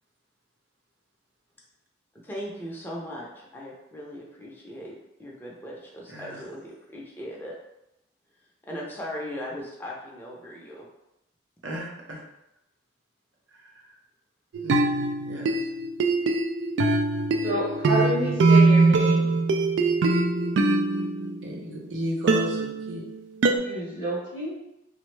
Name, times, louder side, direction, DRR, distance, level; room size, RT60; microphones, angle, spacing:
voice 1, 2.2-7.6 8.7-10.9, equal, 10° left, -4 dB, 0.5 m, -38 dB
voice 2, 6.1-6.4 11.6-12.2 13.5-13.9 14.6-15.7 21.4-23.1, left 1 dB, 90° right, -2 dB, 0.7 m, -35 dB
sound 1, 14.5-21.8 22.3-23.6, right 3 dB, 65° right, 0.3 m, -22 dB
voice 3, 17.4-19.4 23.5-24.5, equal, 30° right, -6 dB, 0.8 m, -29 dB
3.3 x 2.1 x 3.1 m, 0.87 s
head